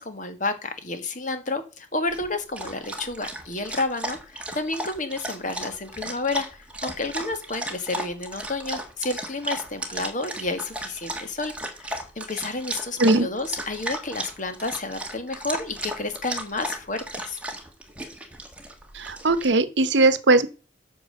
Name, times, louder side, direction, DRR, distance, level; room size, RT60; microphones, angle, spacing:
voice 1, 0.1-17.4, left 2 dB, 40° left, 1.5 m, -31 dB
Dog, 2.1-19.4, right 1 dB, 5° right, 1.5 m, -35 dB
voice 2, 18.9-20.5, right 2 dB, 70° right, 0.9 m, -19 dB
8.7 x 6.2 x 6.5 m
head